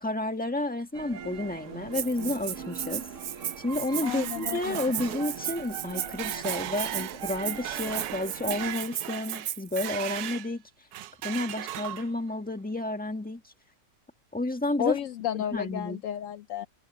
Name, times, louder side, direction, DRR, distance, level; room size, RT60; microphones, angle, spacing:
voice 1, 0.0-3.1 3.6-10.6 11.2-13.4 14.3-15.0 15.3-16.0, left 2 dB, 5° left, 1.5 m, -31 dB
sound 1, 0.9-8.7, right 7 dB, 50° right, 1.2 m, -41 dB
Rattle (instrument), 1.9-9.9, right 10 dB, 90° right, 0.5 m, -36 dB
sound 2, 3.5-10.5 10.9-12.3, right 13 dB, 70° right, 1.0 m, -38 dB
voice 2, 4.0-4.8 14.8-16.7, left 11 dB, 80° left, 0.7 m, -32 dB
open air
omnidirectional pair, 1.9 m